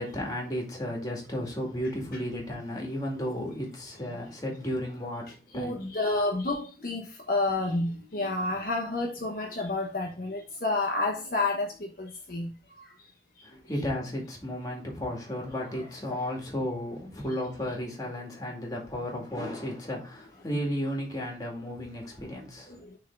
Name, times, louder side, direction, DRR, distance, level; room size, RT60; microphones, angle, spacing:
voice 1, 0.0-5.8 13.4-22.8, equal, 20° left, 2.2 m, -34 dB
voice 2, 5.5-7.0 7.3-12.5, left 2 dB, 55° left, 1.0 m, -29 dB
6.4 x 3.8 x 4.6 m
head